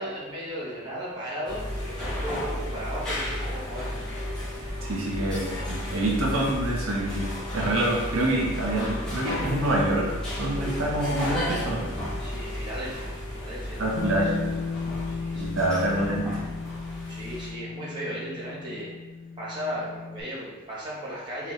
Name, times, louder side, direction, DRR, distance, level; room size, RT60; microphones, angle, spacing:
voice 1, 0.0-4.1 5.4-5.6 12.2-14.3 15.1-15.5 17.1-18.9 19.4-21.5, equal, 20° right, -7 dB, 0.9 m, -36 dB
sound 1, 1.4-17.5, left 1 dB, 5° left, 0.8 m, -33 dB
voice 2, 4.9-7.3 7.5-11.9 13.8-14.5 15.3-16.4, right 1 dB, 70° right, -3 dB, 0.7 m, -26 dB
Bass guitar, 14.0-20.2, left 4 dB, 80° left, 0.4 m, -35 dB
3.7 x 3.0 x 3.0 m, 1.2 s
head